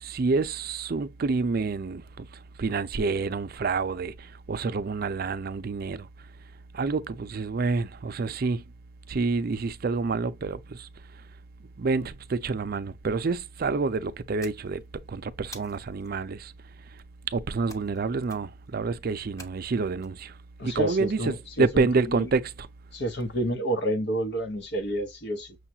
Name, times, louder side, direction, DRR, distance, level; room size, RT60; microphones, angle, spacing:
voice 1, 0.0-2.3 2.6-6.1 6.7-8.6 9.1-10.9 11.8-14.8 15.1-16.5 17.3-20.3 20.6-21.3 21.6-22.5, right 4 dB, 50° right, 0.5 m, -28 dB
sound 1, 14.4-15.0 15.5-16.1 17.7-18.0 18.3-18.7 19.4-20.1, equal, 15° left, 0.9 m, -47 dB
voice 2, 20.6-22.3 22.9-25.6, right 1 dB, 65° left, 1.0 m, -29 dB
6.3 x 2.4 x 2.7 m
head